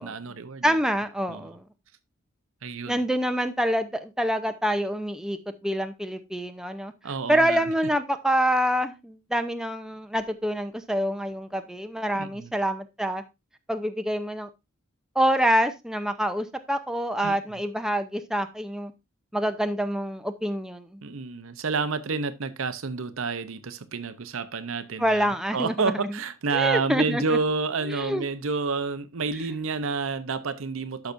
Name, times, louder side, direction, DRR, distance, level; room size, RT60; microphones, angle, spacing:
voice 1, 0.0-0.6 1.3-1.5 2.6-3.0 7.0-7.6 12.2-12.5 17.2-17.4 21.0-31.1, right 4 dB, 70° right, 0.7 m, -29 dB
voice 2, 0.6-1.6 2.9-6.9 7.3-13.2 13.7-14.5 15.2-18.9 19.3-21.0 25.0-26.2 26.5-27.2 27.9-28.2, equal, 5° right, 0.6 m, -26 dB
12.0 x 5.9 x 2.6 m
head